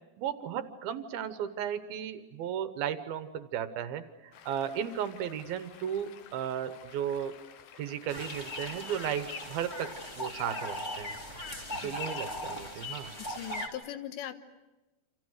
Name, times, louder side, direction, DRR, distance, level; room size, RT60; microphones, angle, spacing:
voice 1, 0.2-7.3 7.8-11.1 11.8-13.1, right 9 dB, 70° right, 10 dB, 2.6 m, -35 dB
Stream, 4.3-10.0, left 9 dB, 70° left, 3.2 m, -54 dB
sound 1, 8.1-13.7, left 1 dB, 25° left, 1.6 m, -38 dB
voice 2, 13.3-14.4, left 11 dB, 85° left, 9 dB, 3.5 m, -40 dB
28.5 x 27.0 x 6.5 m, 1.1 s
omnidirectional pair, 5.0 m